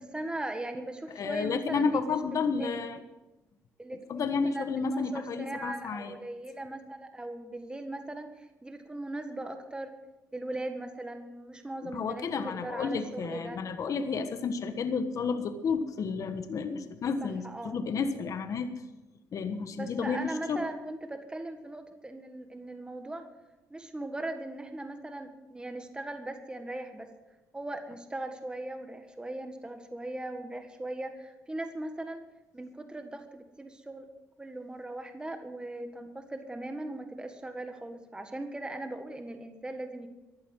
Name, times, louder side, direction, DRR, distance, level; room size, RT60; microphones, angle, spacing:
voice 1, 0.1-2.2 2.6-2.8 3.8-9.9 10.3-13.6 17.4-17.8 19.8-23.3 23.7-27.1 27.5-32.2 32.5-34.1 34.4-40.1, right 1 dB, 15° right, 6 dB, 1.7 m, -39 dB
voice 2, 1.1-3.0 4.1-6.2 11.8-18.7 19.3-20.6, left 5 dB, 55° left, 8 dB, 1.3 m, -31 dB
15.0 x 11.0 x 6.3 m, 1.0 s
cardioid pair, 85°, 7 cm